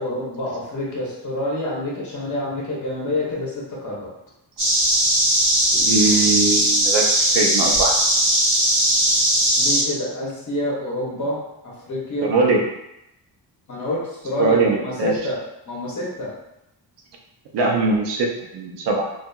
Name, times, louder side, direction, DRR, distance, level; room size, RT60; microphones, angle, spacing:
voice 1, 0.0-4.1 9.5-11.4 11.9-12.3 13.7-15.4 15.7-16.3, left 1 dB, 45° left, -5 dB, 0.9 m, -27 dB
sound 1, 4.6-9.8, right 1 dB, 40° right, 1.0 m, -18 dB
voice 2, 5.7-7.9 12.2-12.6 14.4-15.1 17.5-19.1, right 3 dB, 80° right, 1 dB, 0.6 m, -21 dB
2.7 x 2.4 x 2.3 m, 0.84 s
wide cardioid pair, 175°, 41 cm